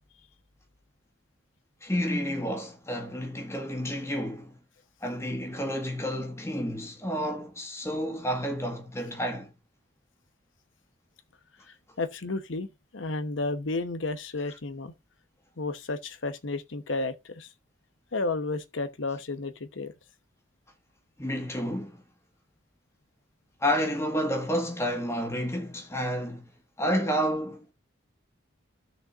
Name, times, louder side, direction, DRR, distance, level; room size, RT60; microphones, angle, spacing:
voice 1, 1.8-4.6 5.0-9.5 21.2-22.0 23.6-26.5 26.8-27.7, equal, 15° left, 1.5 m, -30 dB
voice 2, 11.7-14.9 15.6-17.5 18.1-19.9, left 3 dB, 75° left, 0.9 m, -32 dB
14.5 x 6.4 x 2.5 m
head